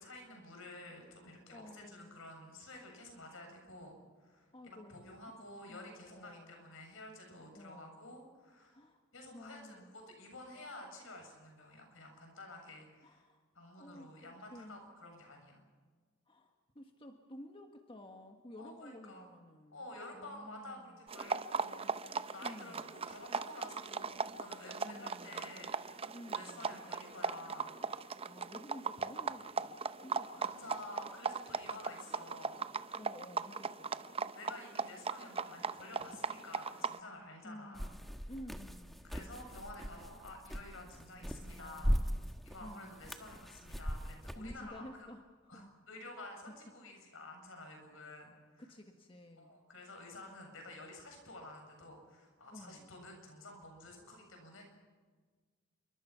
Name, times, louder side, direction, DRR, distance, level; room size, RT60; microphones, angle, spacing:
voice 1, 0.0-8.9 9.1-13.2 13.6-15.6 18.6-19.3 19.7-27.7 30.3-33.0 34.3-37.9 39.0-41.9 42.4-45.1 45.5-48.7 49.4-54.6, left 1 dB, 70° left, 3 dB, 7.2 m, -51 dB
voice 2, 1.5-2.2 2.7-2.9 4.5-5.1 5.7-6.7 7.5-8.1 8.7-9.0 9.3-10.0 13.0-13.4 13.8-14.8 16.3-19.9 20.1-21.0 22.4-23.0 24.8-25.6 26.1-26.9 27.8-30.8 33.0-34.0 37.4-39.0 41.6-43.1 44.3-45.2 45.5-45.7 46.0-46.6 48.6-49.6 52.5-53.0, left 1 dB, 25° left, 4 dB, 1.6 m, -53 dB
sound 1, 21.1-37.0, right 5 dB, 30° right, 0.7 m, -39 dB
sound 2, 37.7-44.5, equal, ahead, 1.3 m, -39 dB
27.0 x 24.0 x 5.9 m, 1.5 s
head